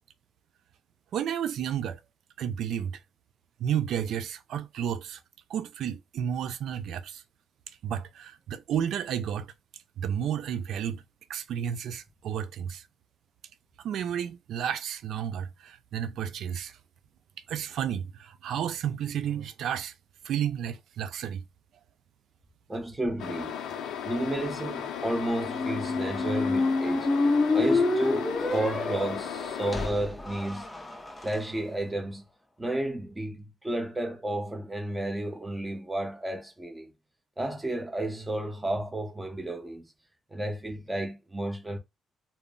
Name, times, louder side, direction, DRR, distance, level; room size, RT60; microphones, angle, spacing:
voice 1, 1.1-2.0 2.4-3.0 3.6-5.2 5.5-7.2 7.8-9.5 10.0-11.0 11.3-12.9 13.8-16.8 17.5-19.9 20.2-21.4, right 9 dB, 75° right, 0.3 m, -32 dB
voice 2, 22.7-23.6 24.0-27.1 27.5-30.7 31.2-32.2 32.6-36.9 37.4-39.9 40.3-41.8, right 1 dB, 15° right, 0.8 m, -32 dB
sound 1, 23.2-29.9, left 8 dB, 80° left, 0.4 m, -36 dB
Squeak, 25.4-31.4, left 3 dB, 10° left, 0.5 m, -28 dB
2.1 x 2.0 x 3.6 m
cardioid pair, 90°, 0 cm